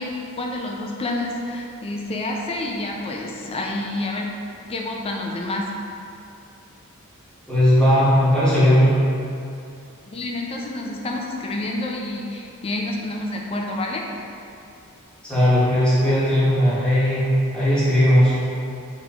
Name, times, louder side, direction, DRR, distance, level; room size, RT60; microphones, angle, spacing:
voice 1, 0.0-4.3 4.7-5.7 10.1-14.0, left 2 dB, 25° left, 0 dB, 0.4 m, -28 dB
voice 2, 7.5-8.9 15.2-17.3 17.5-18.3, equal, 5° left, -11 dB, 1.1 m, -17 dB
3.8 x 3.4 x 2.9 m, 2.6 s
head